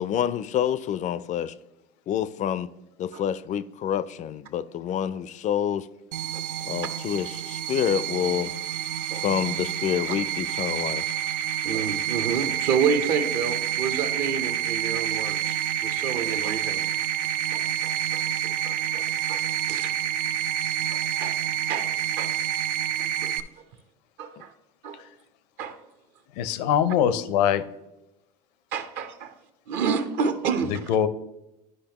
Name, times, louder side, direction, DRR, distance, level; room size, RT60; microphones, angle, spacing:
voice 1, 0.0-1.5 2.1-2.7 3.0-5.9 6.6-8.5 9.2-11.1 24.4-24.5, left 9 dB, 35° left, 0.4 m, -27 dB
sound 1, 6.1-23.4, right 10 dB, 90° right, 0.5 m, -28 dB
voice 2, 11.6-16.8 17.2-19.9 20.9-21.4 21.7-22.3 23.0-23.3 24.2-24.5 24.8-25.0 25.6-25.8 28.7-29.3 29.7-30.7, right 6 dB, 60° right, 0.9 m, -30 dB
voice 3, 26.4-27.6 30.9-31.1, left 9 dB, 75° left, 0.6 m, -22 dB
11.0 x 5.0 x 2.9 m
supercardioid pair, 95°, 21 cm